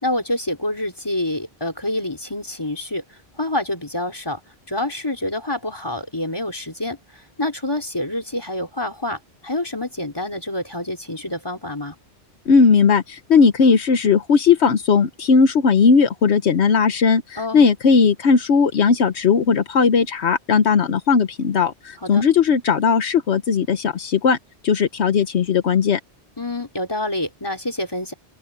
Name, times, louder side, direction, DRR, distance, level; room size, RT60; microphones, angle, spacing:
voice 1, 0.0-4.4 4.7-7.0 7.4-12.0 17.4-17.7 22.0-22.2 26.4-28.1, left 1 dB, 20° left, 4.0 m, -27 dB
voice 2, 12.5-24.4 24.6-26.0, left 5 dB, 75° left, 1.2 m, -17 dB
open air
omnidirectional pair, 1.1 m